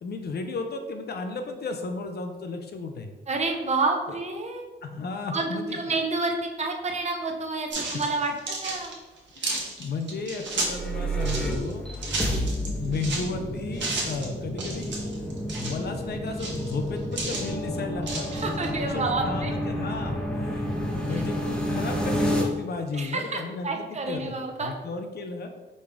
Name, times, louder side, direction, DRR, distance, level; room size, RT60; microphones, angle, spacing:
voice 1, 0.0-3.2 4.1-4.2 4.8-6.0 7.7-7.8 9.4-11.9 12.7-15.0 15.5-18.3 18.9-25.5, left 4 dB, 55° left, 5 dB, 0.5 m, -34 dB
voice 2, 3.3-4.6 5.3-8.3 8.6-8.9 18.3-19.5 21.1-21.2 22.9-24.7, right 3 dB, 35° right, 2 dB, 0.6 m, -29 dB
sound 1, 7.7-10.8 11.2-13.3 13.7-14.3 14.6-15.8 16.3-17.5 18.0-18.7, right 2 dB, 65° right, 1.1 m, -32 dB
sound 2, 10.4-22.4, equal, 5° left, 0.9 m, -30 dB
5.1 x 2.4 x 3.4 m, 1.2 s
cardioid pair, 100°, 20 cm